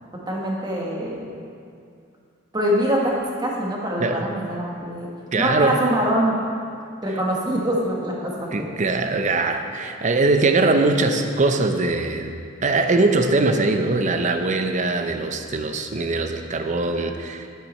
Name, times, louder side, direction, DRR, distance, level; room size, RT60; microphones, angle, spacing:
voice 1, 0.3-1.3 2.5-5.1 5.4-6.4 7.0-8.6, equal, 20° right, -2 dB, 1.3 m, -24 dB
voice 2, 5.3-5.8 8.5-17.5, right 3 dB, 35° right, 6 dB, 0.6 m, -21 dB
9.0 x 8.1 x 4.3 m, 2.4 s
head